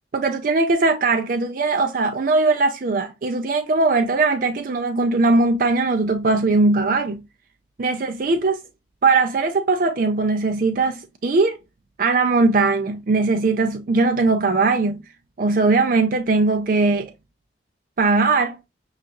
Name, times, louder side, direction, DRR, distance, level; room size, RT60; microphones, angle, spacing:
voice 1, 0.1-7.2 7.8-8.6 9.0-11.6 12.0-15.0 15.4-17.1 18.0-18.6, right 3 dB, 50° right, 0.4 m, -20 dB
6.1 x 2.4 x 2.9 m
head